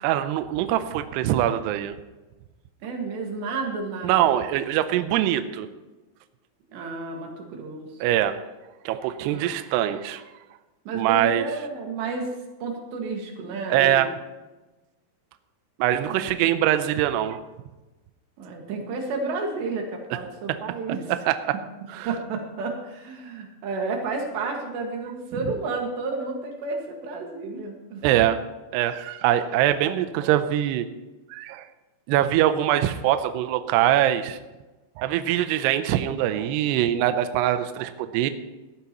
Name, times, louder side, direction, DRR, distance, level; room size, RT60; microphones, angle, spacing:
voice 1, 0.0-2.0 4.0-5.7 8.0-8.4 8.9-10.2 10.9-11.4 13.7-14.1 15.8-17.4 20.5-20.6 21.1-21.6 21.9-22.1 28.0-28.4 28.7-30.9 31.3-31.7 32.1-34.4 35.0-38.3, right 12 dB, 85° right, 10 dB, 2.4 m, -23 dB
voice 2, 2.8-4.4 6.7-8.0 9.3-9.5 10.9-12.3 12.6-14.1 16.1-16.5 18.4-21.1 22.1-28.0 29.8-29.9, right 3 dB, 65° right, 1 dB, 3.9 m, -31 dB
18.0 x 13.0 x 3.0 m, 1.1 s
omnidirectional pair, 5.6 m